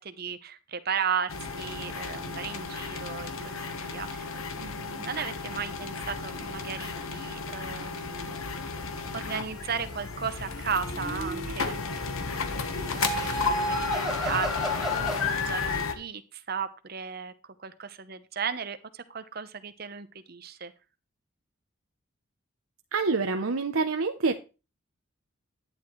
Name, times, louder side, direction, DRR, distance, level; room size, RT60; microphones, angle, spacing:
voice 1, 0.0-4.3 4.6-8.3 9.1-17.3 17.6-20.7, right 6 dB, 45° right, 11 dB, 0.8 m, -35 dB
sound 1, 1.3-15.9, left 4 dB, 90° left, 1.3 m, -33 dB
sound 2, 10.7-11.7 12.7-15.4, right 2 dB, ahead, 1.9 m, -33 dB
voice 2, 22.9-24.4, right 4 dB, 85° right, 7 dB, 0.7 m, -26 dB
11.0 x 9.7 x 3.2 m, 0.31 s
head